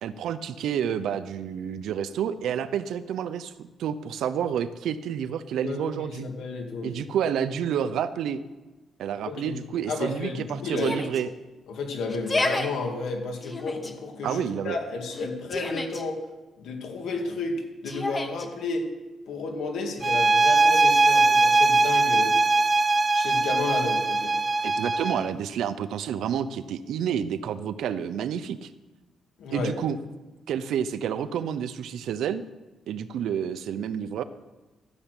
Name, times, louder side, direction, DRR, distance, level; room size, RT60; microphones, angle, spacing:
voice 1, 0.0-3.5 3.8-6.3 6.8-8.4 9.0-11.3 14.2-14.8 24.6-28.7 29.5-30.0 30.5-32.4 32.9-34.2, right 8 dB, 80° right, 12 dB, 0.7 m, -29 dB
voice 2, 5.6-7.0 9.3-9.6 9.9-11.0 11.7-16.2 16.6-18.9 19.3-22.4 23.1-24.4 29.4-29.7, left 3 dB, 80° left, 3 dB, 2.4 m, -32 dB
Yell, 10.8-11.2 12.1-12.7 13.4-13.9 15.1-16.0 17.9-18.5, left 2 dB, 20° left, 1.1 m, -30 dB
sound 1, 20.0-25.3, right 3 dB, 20° right, 0.5 m, -21 dB
13.5 x 7.3 x 8.3 m, 1.1 s
cardioid pair, 145°, 0 cm